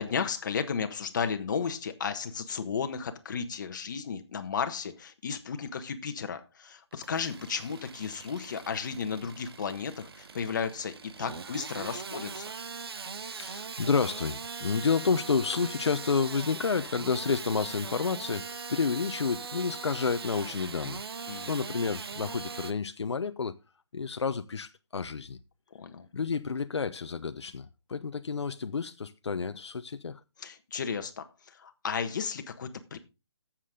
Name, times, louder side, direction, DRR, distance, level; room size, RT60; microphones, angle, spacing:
voice 1, 0.0-12.5 21.3-21.5 25.7-26.1 30.4-33.0, left 6 dB, 45° left, 1.4 m, -34 dB
Engine starting / Sawing, 6.9-22.7, right 5 dB, 60° right, 1.0 m, -41 dB
voice 2, 13.2-21.0 21.5-23.6 23.9-25.4 26.1-30.2, left 5 dB, 80° left, 0.8 m, -30 dB
13.0 x 7.5 x 3.7 m
hypercardioid pair, 165°, 14 cm